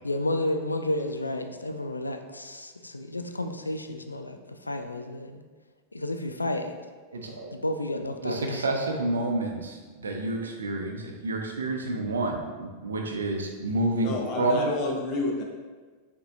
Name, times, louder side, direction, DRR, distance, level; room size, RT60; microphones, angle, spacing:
voice 1, 0.0-4.4 4.6-5.4 5.9-6.7 7.5-8.7, left 1 dB, 80° left, 6 dB, 0.3 m, -31 dB
voice 2, 7.1-7.6 8.2-14.7, right 2 dB, 70° right, 2 dB, 0.6 m, -29 dB
voice 3, 13.9-15.4, left 2 dB, 40° left, 0 dB, 0.8 m, -29 dB
6.3 x 2.7 x 2.5 m, 1.4 s
figure-of-eight pair, 90°, 0 cm